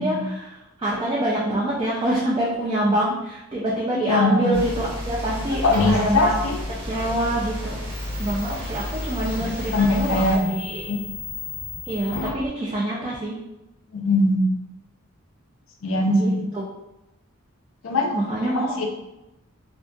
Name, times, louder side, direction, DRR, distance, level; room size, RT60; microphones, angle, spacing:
voice 1, 0.0-6.4 6.8-7.7 8.2-10.9 11.8-13.4 16.1-16.6 18.1-18.8, right 1 dB, 25° right, -5 dB, 0.3 m, -26 dB
voice 2, 3.9-4.6 5.6-6.6 8.5-8.6 9.3-9.5 9.7-10.5 10.9-11.0 13.9-14.5 15.8-16.5 17.8-18.8, left 2 dB, 65° left, 1 dB, 0.5 m, -22 dB
sound 1, 4.5-10.4, left 1 dB, 75° right, 1.0 m, -31 dB
sound 2, 5.6-12.5, left 2 dB, 10° left, 0.8 m, -35 dB
2.7 x 2.4 x 2.2 m, 0.94 s
head